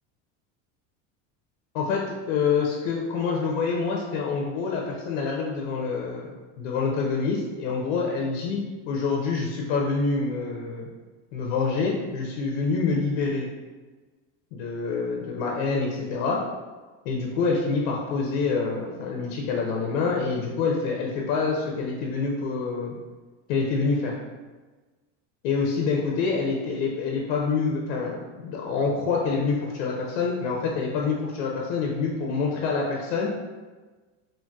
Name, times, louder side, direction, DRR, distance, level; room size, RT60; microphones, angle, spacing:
voice 1, 1.7-10.9 11.3-13.5 14.5-16.4 17.1-22.9 23.5-24.2 25.4-33.3, left 4 dB, 80° left, -1 dB, 0.6 m, -26 dB
3.8 x 2.1 x 2.2 m, 1.3 s
cardioid pair, 160°, 37 cm